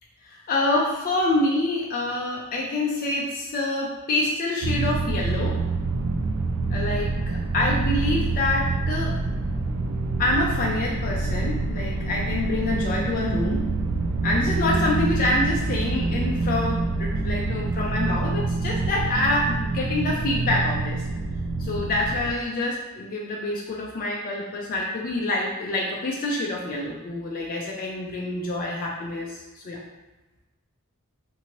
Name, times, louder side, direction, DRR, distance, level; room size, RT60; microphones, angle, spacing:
voice 1, 0.2-5.6 6.7-9.1 10.2-13.6 14.2-21.0 21.6-29.8, left 2 dB, 40° left, -3 dB, 0.4 m, -26 dB
sound 1, 4.6-22.3, right 3 dB, 85° right, 0.4 m, -26 dB
2.8 x 2.6 x 2.9 m, 1.1 s
head